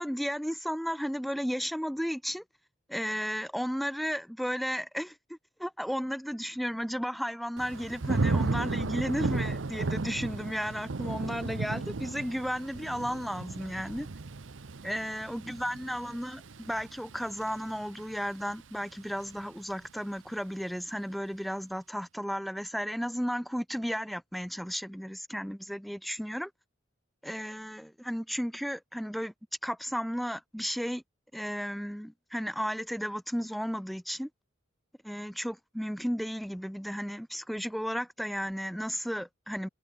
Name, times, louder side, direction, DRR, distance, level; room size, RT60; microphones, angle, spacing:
voice 1, 0.0-2.4 2.9-14.1 14.8-26.5 27.2-29.3 29.6-31.0 31.3-34.3 35.0-39.7, equal, ahead, 0.7 m, -34 dB
Thunder / Rain, 7.6-18.5 18.9-19.4, right 3 dB, 75° right, 0.8 m, -34 dB
head